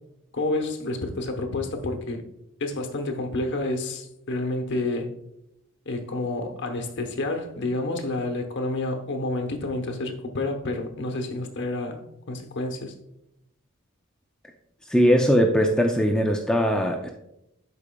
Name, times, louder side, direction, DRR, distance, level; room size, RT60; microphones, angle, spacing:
voice 1, 0.3-2.2 2.6-5.2 5.9-12.9, left 2 dB, 55° left, 5 dB, 1.0 m, -29 dB
voice 2, 14.9-17.1, equal, 5° left, 2 dB, 0.4 m, -20 dB
12.0 x 4.9 x 2.3 m, 0.83 s
head